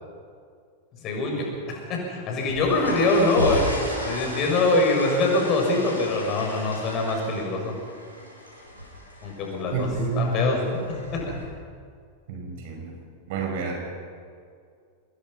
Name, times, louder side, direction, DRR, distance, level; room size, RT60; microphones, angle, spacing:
voice 1, 1.0-3.7 4.0-7.7 9.2-9.9 10.1-11.4, left 2 dB, 35° left, 0 dB, 6.8 m, -24 dB
sound 1, 2.3-11.4, left 1 dB, 90° left, 5.9 m, -34 dB
voice 2, 9.7-10.3 12.3-13.0 13.3-13.8, right 5 dB, 50° right, 2 dB, 5.7 m, -29 dB
25.5 x 20.5 x 5.8 m, 2.2 s
figure-of-eight pair, 90°, 0 cm